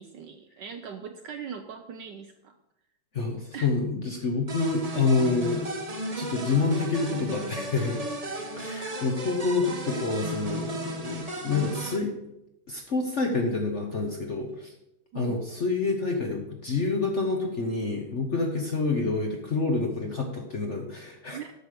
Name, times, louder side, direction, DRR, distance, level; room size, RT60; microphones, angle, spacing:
voice 1, 0.0-2.6 3.5-3.7 15.1-15.4 21.3-21.5, right 7 dB, 70° right, 7 dB, 1.1 m, -40 dB
voice 2, 3.1-5.7 6.1-8.0 8.6-12.1 12.7-14.7 15.1-21.4, left 3 dB, 45° left, 2 dB, 1.0 m, -28 dB
sound 1, 4.5-12.0, right 1 dB, 30° right, 0.7 m, -35 dB
8.4 x 6.1 x 6.7 m, 0.87 s
omnidirectional pair, 2.4 m